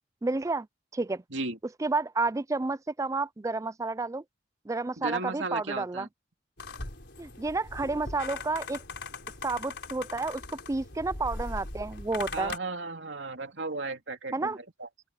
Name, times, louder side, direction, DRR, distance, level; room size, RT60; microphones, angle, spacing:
voice 1, 0.2-0.7 0.9-1.2 1.8-4.2 4.7-6.1 7.2-8.8 9.4-10.4 10.7-12.6 14.3-14.6, right 3 dB, 15° right, 0.4 m, -30 dB
voice 2, 5.0-6.1 12.3-14.5 14.8-14.9, right 3 dB, 70° right, 2.9 m, -35 dB
sound 1, 6.6-12.6, left 3 dB, 65° left, 5.0 m, -40 dB
open air
head